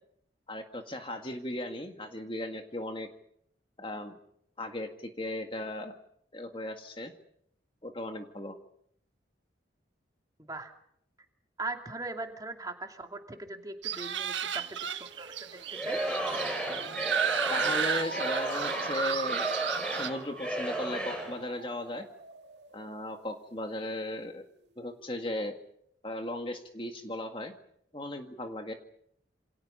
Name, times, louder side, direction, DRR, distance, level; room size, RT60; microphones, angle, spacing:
voice 1, 0.5-3.1 3.8-4.2 4.6-6.0 6.3-7.1 7.8-8.6 17.5-19.6 19.9-22.1 22.7-24.4 24.8-25.6 26.0-27.5 27.9-28.7, left 1 dB, 30° left, 5 dB, 1.9 m, -36 dB
voice 2, 10.4-10.7 11.6-15.5 15.8-16.0, right 2 dB, 20° right, 4 dB, 2.6 m, -40 dB
sound 1, 13.8-20.1, right 7 dB, 85° right, 1.5 m, -33 dB
sound 2, 14.6-23.4, right 4 dB, 70° right, 2.0 m, -42 dB
Singing / Crowd, 15.7-21.4, right 1 dB, 5° left, 6.9 m, -34 dB
28.0 x 27.0 x 5.6 m, 0.72 s
head